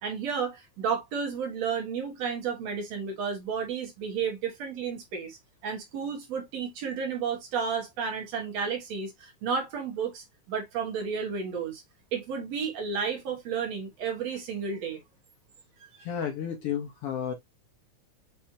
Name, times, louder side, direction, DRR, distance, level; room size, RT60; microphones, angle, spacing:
voice 1, 0.0-11.8 12.1-15.0, right 6 dB, 65° right, 2.4 m, -32 dB
voice 2, 16.0-17.3, left 8 dB, 65° left, 1.6 m, -32 dB
5.7 x 3.2 x 2.6 m
omnidirectional pair, 3.3 m